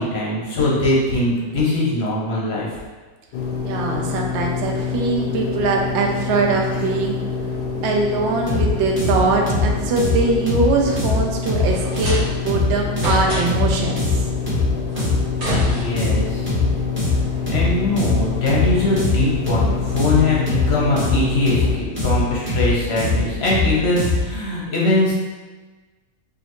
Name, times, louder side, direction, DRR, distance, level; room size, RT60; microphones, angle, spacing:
voice 1, 0.0-2.7 15.6-16.5 17.5-25.1, left 2 dB, 50° left, -5 dB, 0.8 m, -21 dB
sound 1, 3.3-21.8, left 6 dB, 75° left, 1.1 m, -27 dB
voice 2, 3.6-7.2 7.8-14.2, right 3 dB, 70° right, 1 dB, 0.6 m, -22 dB
sound 2, 8.5-24.4, left 3 dB, 20° right, 0.3 m, -22 dB
sound 3, 11.7-12.6 13.0-13.7 14.9-16.3, right 1 dB, 40° right, 1.8 m, -29 dB
4.9 x 2.7 x 3.0 m, 1.3 s
omnidirectional pair, 1.9 m